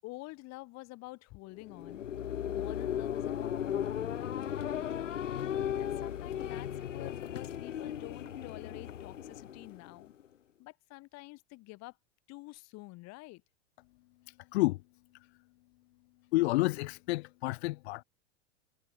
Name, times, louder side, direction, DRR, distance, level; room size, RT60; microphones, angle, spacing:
voice 1, 0.0-2.0 2.5-5.2 5.5-10.1 10.6-12.0 12.3-13.4, left 22 dB, 45° left, 7.2 m, -49 dB
sound 1, 1.6-10.2, left 10 dB, 90° left, 1.9 m, -36 dB
voice 2, 14.3-14.8 16.3-18.0, left 20 dB, 60° left, 2.7 m, -30 dB
hypercardioid pair, 115°, 36 cm